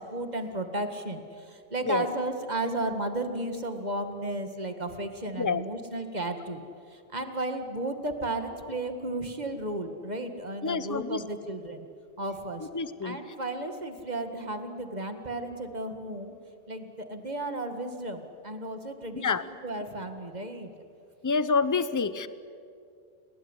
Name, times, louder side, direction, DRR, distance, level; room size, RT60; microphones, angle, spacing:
voice 1, 0.0-11.9 12.2-12.7 13.0-16.4 16.7-20.7, right 2 dB, 45° right, 7 dB, 2.1 m, -34 dB
voice 2, 10.6-11.2 12.7-13.2 19.2-19.4 21.2-22.3, left 4 dB, 20° left, 14 dB, 0.7 m, -27 dB
30.0 x 18.5 x 10.0 m, 2.4 s
omnidirectional pair, 1.1 m